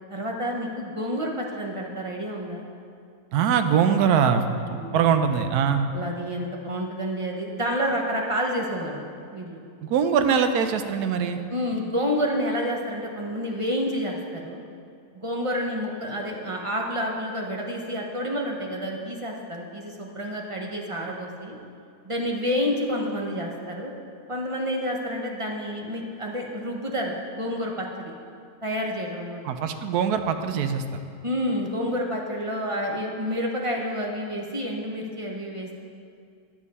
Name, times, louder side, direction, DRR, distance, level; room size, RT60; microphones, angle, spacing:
voice 1, 0.1-2.6 4.6-5.2 5.9-9.6 11.5-14.6 15.1-21.6 22.0-23.9 24.3-28.1 28.6-29.4 31.2-35.7, equal, 30° right, 0 dB, 0.6 m, -29 dB
voice 2, 3.3-4.4 4.7-5.9 9.8-11.4 29.4-30.8, right 7 dB, 80° right, 8 dB, 1.1 m, -22 dB
11.0 x 7.2 x 4.1 m, 2.4 s
omnidirectional pair, 1.7 m